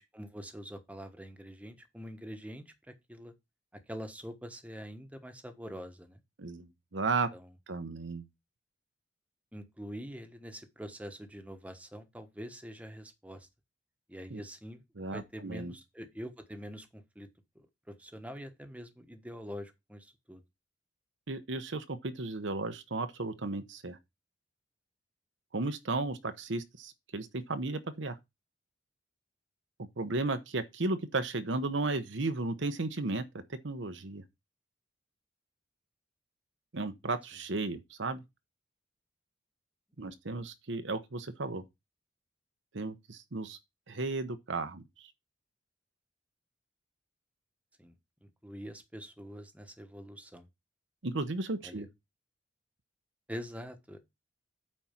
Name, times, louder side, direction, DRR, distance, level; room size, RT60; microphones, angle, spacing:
voice 1, 0.0-3.3 3.7-6.2 7.3-7.5 9.5-13.5 14.1-14.8 15.1-17.3 17.5-20.4 40.0-40.1 47.8-48.0 48.2-50.5 51.6-51.9 53.3-54.0, equal, 5° right, 1.2 m, -45 dB
voice 2, 6.4-7.3 7.7-8.2 14.3-14.4 15.0-15.7 21.3-24.0 25.5-28.2 30.0-33.2 33.6-34.2 36.7-38.2 40.0-41.6 42.7-43.6 43.9-45.1 51.0-51.9, right 3 dB, 70° right, 0.9 m, -34 dB
9.0 x 4.3 x 5.8 m
head